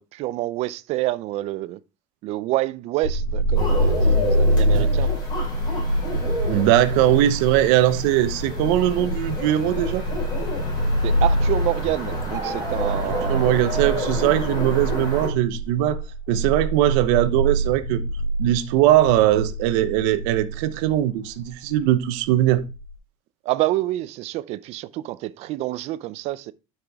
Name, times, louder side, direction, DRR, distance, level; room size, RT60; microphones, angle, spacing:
voice 1, 0.0-1.8 2.2-5.1 11.0-13.6 23.4-26.5, right 16 dB, 45° right, 0.5 m, -27 dB
sound 1, 3.0-22.9, right 1 dB, 80° left, 2.7 m, -25 dB
sound 2, 3.5-15.3, left 2 dB, 30° left, 3.9 m, -31 dB
voice 2, 6.4-10.0 13.1-16.0 16.3-18.0 18.4-22.6, right 13 dB, 80° right, 0.8 m, -20 dB
sound 3, 12.2-13.4, right 7 dB, 20° right, 1.0 m, -33 dB
9.6 x 5.9 x 3.5 m
cardioid pair, 170°, 15 cm